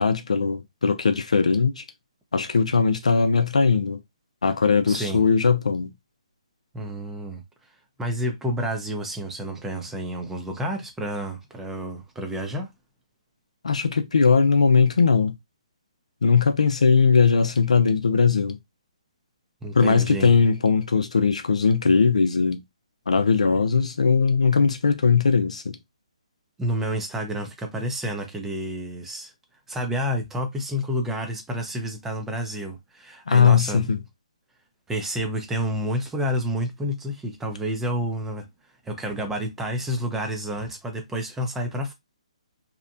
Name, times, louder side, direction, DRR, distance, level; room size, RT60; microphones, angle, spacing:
voice 1, 0.0-1.8 2.3-4.0 4.4-5.9 13.6-15.3 16.2-18.6 19.7-22.6 23.1-25.8 33.3-34.0, left 5 dB, 80° left, 0.6 m, -19 dB
voice 2, 4.9-5.2 6.7-7.4 8.0-12.7 19.6-20.4 26.6-29.3 29.7-33.9 34.9-38.5 38.8-41.9, equal, 10° right, 0.6 m, -29 dB
2.8 x 2.1 x 2.5 m
hypercardioid pair, 145°, 4 cm